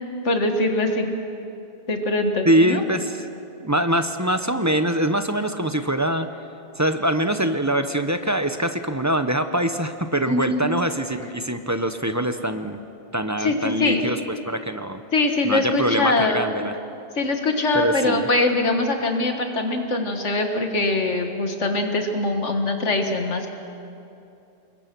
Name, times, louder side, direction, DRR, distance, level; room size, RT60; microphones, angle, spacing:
voice 1, 0.2-1.1 1.9-2.8 10.3-10.7 13.4-14.0 15.1-16.5 17.2-23.5, left 2 dB, 85° left, 4 dB, 1.9 m, -22 dB
voice 2, 2.4-3.2 3.6-6.3 6.8-12.8 13.1-15.0 15.4-16.7 17.7-18.3, right 1 dB, 15° right, 8 dB, 0.8 m, -23 dB
27.0 x 22.0 x 6.1 m, 2.7 s
omnidirectional pair, 1.2 m